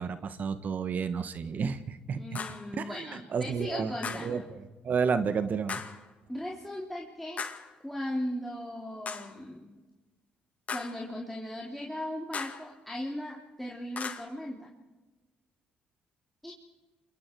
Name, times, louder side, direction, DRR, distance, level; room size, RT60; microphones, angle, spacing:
voice 1, 0.0-2.4 2.8-4.4 4.8-5.8, right 6 dB, 55° right, 11 dB, 1.3 m, -31 dB
voice 2, 2.1-4.4 6.3-7.4 7.8-9.7 10.7-14.7 16.4-16.5, left 1 dB, 5° left, -3 dB, 3.6 m, -37 dB
sound 1, 2.3-2.7 4.0-4.4 5.7-6.1 7.4-7.7 9.1-9.4 10.7-11.1 12.3-12.7 14.0-14.2, left 5 dB, 45° left, 2.2 m, -37 dB
29.0 x 23.5 x 4.7 m, 1.2 s
supercardioid pair, 65°, 3 cm